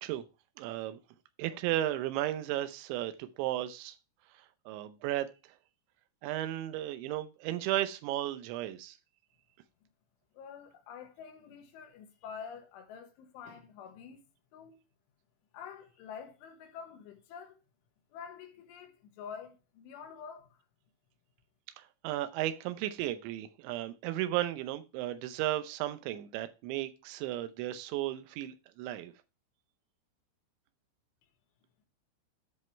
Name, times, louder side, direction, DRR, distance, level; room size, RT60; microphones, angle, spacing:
voice 1, 0.6-1.0 1.4-3.9 4.7-5.3 6.2-9.0 21.8-29.1, right 14 dB, 80° right, 2.8 m, -34 dB
voice 2, 10.4-14.2 14.5-14.8 15.5-17.6 18.1-20.6, left 7 dB, 75° left, 3.5 m, -47 dB
11.0 x 5.5 x 4.4 m
omnidirectional pair, 5.8 m